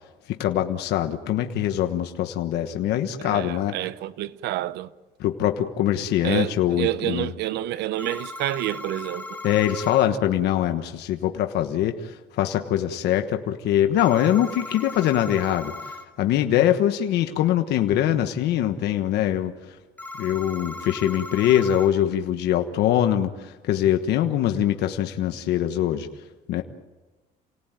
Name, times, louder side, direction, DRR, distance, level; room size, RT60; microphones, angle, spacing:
voice 1, 0.3-3.8 5.2-7.3 9.4-19.8 20.2-26.1 26.5-26.6, left 11 dB, 80° left, 1.4 m, -23 dB
voice 2, 3.2-4.9 6.2-9.4, right 14 dB, 80° right, 0.9 m, -28 dB
sound 1, 8.0-10.0 14.0-16.0 20.0-21.9, left 2 dB, 10° left, 2.7 m, -37 dB
28.5 x 18.5 x 9.1 m
cardioid pair, 110°, 17 cm